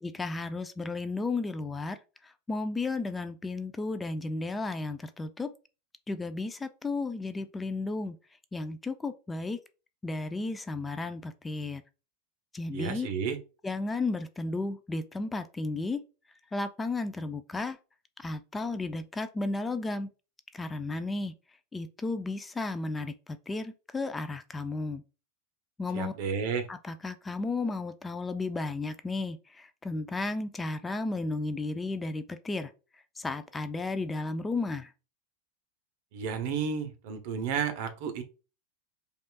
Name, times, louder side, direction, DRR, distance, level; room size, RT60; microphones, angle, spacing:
voice 1, 0.0-5.5 6.1-8.2 8.5-9.6 10.0-11.8 12.5-13.1 13.6-16.0 16.5-17.8 18.2-20.1 20.5-21.3 21.7-25.0 25.8-26.1 26.7-34.9, left 3 dB, 10° left, 0.3 m, -33 dB
voice 2, 12.7-13.4 25.9-26.7 36.1-38.2, right 6 dB, 60° right, 0.7 m, -32 dB
5.2 x 2.4 x 2.3 m
supercardioid pair, 135°, 0 cm